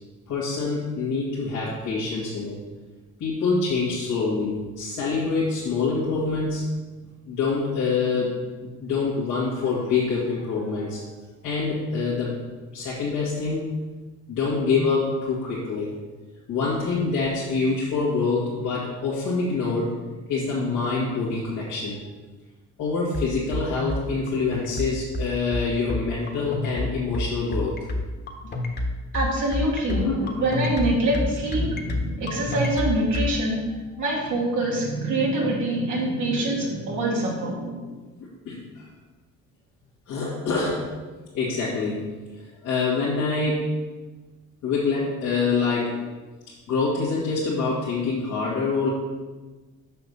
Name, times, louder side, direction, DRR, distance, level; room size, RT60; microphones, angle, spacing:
voice 1, 0.3-2.6 3.2-6.7 7.3-8.4 8.8-11.0 11.4-12.4 12.7-13.8 14.3-15.9 16.5-20.0 20.3-22.0 22.8-27.8 28.4-28.5 29.9-30.5 38.5-38.9 40.1-40.9 41.3-42.0 42.6-43.7 44.6-46.0 46.7-48.9, left 4 dB, 85° left, -7 dB, 2.0 m, -25 dB
sound 1, 23.1-33.3, left 1 dB, 35° left, 1.4 m, -28 dB
voice 2, 29.1-30.1 30.4-33.6 34.0-37.9, right 1 dB, 85° right, -3 dB, 2.6 m, -25 dB
6.6 x 5.5 x 6.5 m, 1.3 s
cardioid pair, 90°, 30 cm